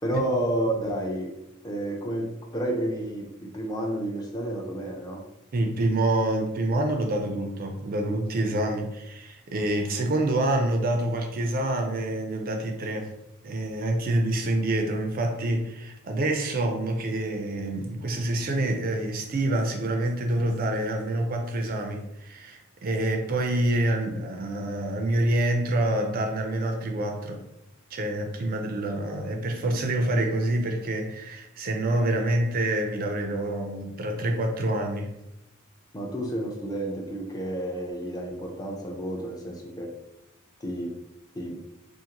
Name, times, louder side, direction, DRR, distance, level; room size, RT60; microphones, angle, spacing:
voice 1, 0.0-1.3 1.6-5.2 35.9-39.9 40.6-40.9 41.3-41.6, right 1 dB, 20° left, 0 dB, 0.4 m, -30 dB
voice 2, 5.5-13.1 13.4-27.4 27.9-35.1, right 1 dB, 45° right, 3 dB, 0.4 m, -27 dB
2.6 x 2.5 x 2.8 m, 0.88 s
head